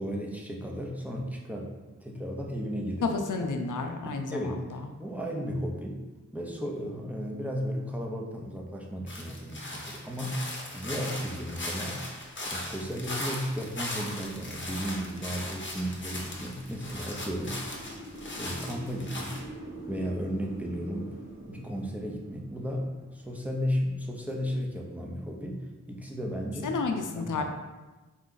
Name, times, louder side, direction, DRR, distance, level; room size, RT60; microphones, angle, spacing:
voice 1, 0.0-3.5 4.1-4.6 5.0-6.0 6.3-10.4 10.7-17.6 18.4-19.4 19.9-21.2 21.5-26.8 27.1-27.4, equal, 5° right, -2 dB, 0.7 m, -34 dB
voice 2, 3.0-4.9 26.6-27.4, left 4 dB, 85° left, 4 dB, 0.5 m, -31 dB
sound 1, 9.1-19.4, left 1 dB, 40° left, 0.9 m, -38 dB
sound 2, 12.1-24.4, right 1 dB, 60° right, 1.3 m, -47 dB
4.3 x 2.4 x 3.9 m, 1.2 s
wide cardioid pair, 45°, 30 cm